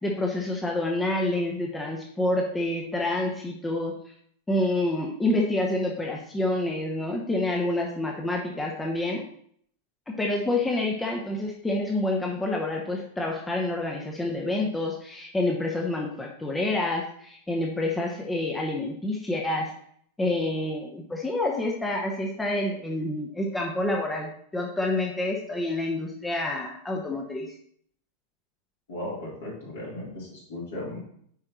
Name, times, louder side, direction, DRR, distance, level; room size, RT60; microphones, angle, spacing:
voice 1, 0.0-3.9 4.5-9.2 10.1-19.7 20.2-27.5, left 2 dB, 10° left, 0 dB, 0.9 m, -28 dB
voice 2, 28.9-31.0, left 1 dB, 60° left, -4 dB, 3.0 m, -36 dB
9.6 x 4.4 x 3.0 m, 0.64 s
figure-of-eight pair, 90°, 0 cm